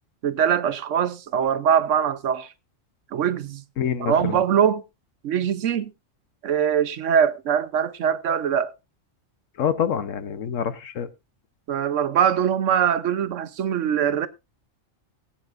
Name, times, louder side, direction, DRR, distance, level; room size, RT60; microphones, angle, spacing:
voice 1, 0.2-2.5 3.1-3.6 4.0-4.8 5.2-5.9 6.4-8.7 11.7-14.3, right 8 dB, 70° right, 1.1 m, -22 dB
voice 2, 3.8-4.4 9.6-11.1, left 8 dB, 75° left, 1.3 m, -26 dB
19.0 x 8.9 x 2.5 m
omnidirectional pair, 1.4 m